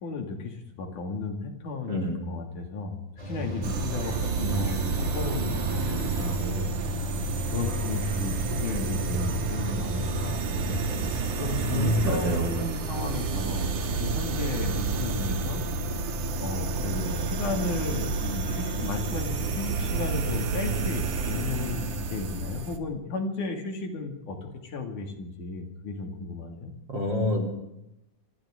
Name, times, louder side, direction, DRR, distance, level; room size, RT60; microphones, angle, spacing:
voice 1, 0.0-3.0 3.3-6.7 7.5-8.3 8.6-15.6 16.4-26.7, left 3 dB, 90° left, 3 dB, 4.1 m, -34 dB
sound 1, 3.2-12.3, left 1 dB, 10° right, 6.1 m, -36 dB
sound 2, 3.6-22.8, right 4 dB, 85° right, 3.0 m, -30 dB
voice 2, 11.7-12.5 26.9-27.4, equal, 35° right, 0 dB, 4.4 m, -26 dB
26.0 x 26.0 x 3.8 m, 0.86 s
omnidirectional pair, 3.4 m